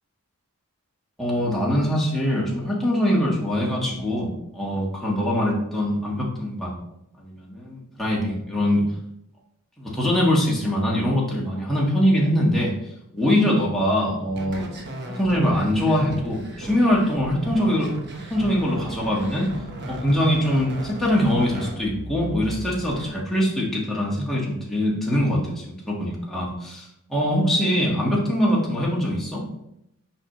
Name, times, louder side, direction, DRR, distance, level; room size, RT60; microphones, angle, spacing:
voice 1, 1.2-6.7 7.2-8.8 9.8-12.7 13.1-14.7 15.0-17.9 18.3-19.5 19.8-29.4, equal, ahead, -5 dB, 1.5 m, -23 dB
sound 1, 14.3-23.1, right 1 dB, 50° right, 1.0 m, -36 dB
5.9 x 5.2 x 3.0 m, 0.81 s
head